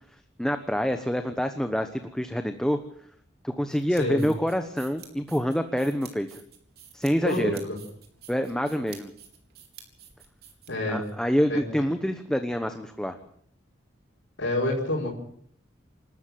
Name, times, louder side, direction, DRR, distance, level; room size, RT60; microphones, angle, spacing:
voice 1, 0.4-2.8 3.4-6.4 6.9-7.6 8.3-9.1 10.9-13.2, equal, 5° left, 7 dB, 1.0 m, -27 dB
sound 1, 3.7-11.1, right 8 dB, 55° right, 4.1 m, -50 dB
voice 2, 3.9-4.2 7.2-7.5 10.7-11.0 11.5-11.6 14.4-15.1, left 1 dB, 85° left, -5 dB, 5.9 m, -27 dB
28.0 x 13.0 x 7.6 m, 0.65 s
head